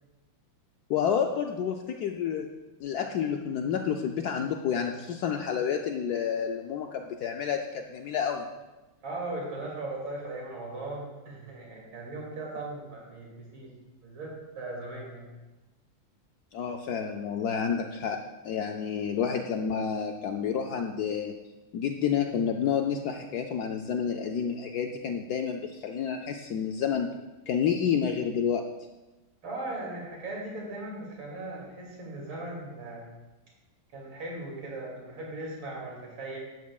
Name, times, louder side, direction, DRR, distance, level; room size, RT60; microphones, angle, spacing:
voice 1, 0.9-2.5 2.8-8.5 16.5-18.2 18.4-21.3 21.7-27.1 27.5-28.6, left 7 dB, 75° left, 3 dB, 0.9 m, -29 dB
voice 2, 9.0-13.7 14.0-15.3 29.4-33.1 33.9-36.4, right 2 dB, 80° right, -3 dB, 3.3 m, -38 dB
12.0 x 9.3 x 2.3 m, 1.1 s
omnidirectional pair, 2.2 m